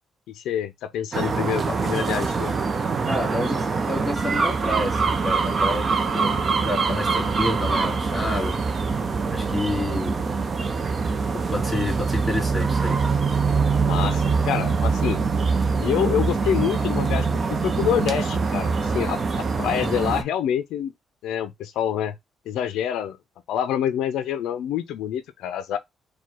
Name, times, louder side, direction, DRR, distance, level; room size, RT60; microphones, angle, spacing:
voice 1, 0.3-2.5 13.8-15.2 15.8-17.3 17.6-20.9 21.2-22.1 22.5-23.2 23.5-25.8, left 10 dB, 85° left, 0.4 m, -26 dB
sound 1, 1.1-20.2, right 4 dB, 40° right, 0.6 m, -24 dB
voice 2, 3.1-8.6 9.3-10.2 11.3-13.1, left 1 dB, 15° left, 2.5 m, -29 dB
4.5 x 2.2 x 4.3 m
cardioid pair, 90°, 0 cm